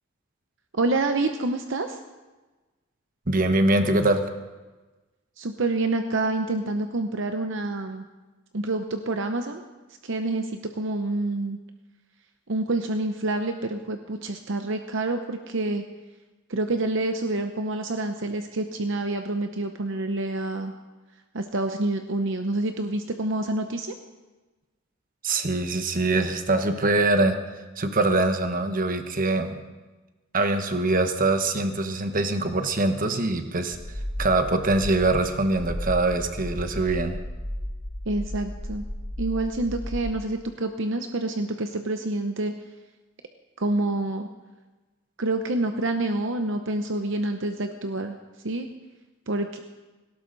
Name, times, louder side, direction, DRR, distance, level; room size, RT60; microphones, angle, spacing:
voice 1, 0.7-2.0 5.4-8.0 8.5-9.6 10.0-11.6 12.5-15.8 16.5-20.7 21.3-23.9 38.1-38.8 39.2-42.5 43.6-44.3 45.2-48.2 48.4-48.7 49.3-49.6, right 2 dB, 60° right, 6 dB, 0.8 m, -27 dB
voice 2, 3.3-4.2 25.2-27.4 27.8-29.6 30.3-33.8 34.2-37.2, right 2 dB, 40° right, 7 dB, 1.2 m, -23 dB
sound 1, 33.7-40.1, equal, 20° left, 1.0 m, -34 dB
18.5 x 17.0 x 4.0 m, 1.2 s
head